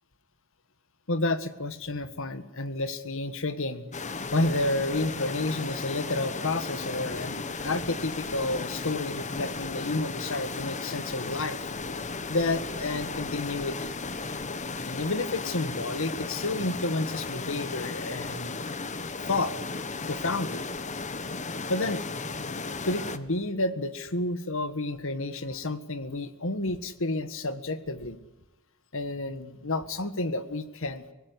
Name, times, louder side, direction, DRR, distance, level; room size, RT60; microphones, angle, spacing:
voice 1, 1.1-3.9 4.3-11.7 12.3-13.9 14.9-18.6 19.3-19.5 20.1-20.6 21.7-22.0 22.8-28.2 28.9-31.1, left 2 dB, 65° left, 12 dB, 1.7 m, -30 dB
sound 1, 3.9-23.2, left 4 dB, 35° left, 1.2 m, -35 dB
25.0 x 18.5 x 9.7 m, 1.1 s
head